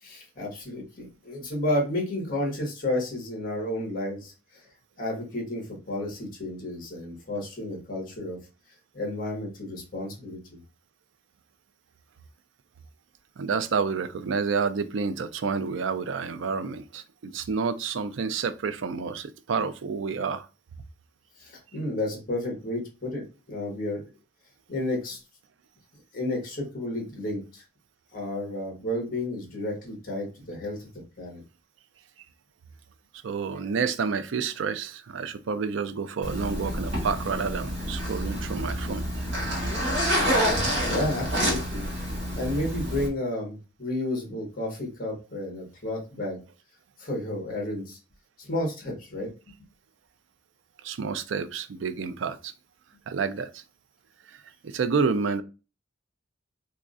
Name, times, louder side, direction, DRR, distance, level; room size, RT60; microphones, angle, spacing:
voice 1, 0.0-4.7 5.0-8.4 8.9-10.6 21.4-24.0 24.7-25.2 26.1-27.6 28.1-30.9 31.2-31.4 40.8-41.9 42.3-46.4 47.0-48.0 48.4-49.3, left 1 dB, 50° left, 1.5 m, -31 dB
voice 2, 13.4-20.5 33.2-39.0 50.8-52.5 53.1-53.6 54.3-55.4, right 5 dB, 80° right, 0.4 m, -29 dB
Zipper (clothing), 36.2-43.1, equal, 65° right, 1.9 m, -28 dB
3.6 x 3.1 x 2.5 m
head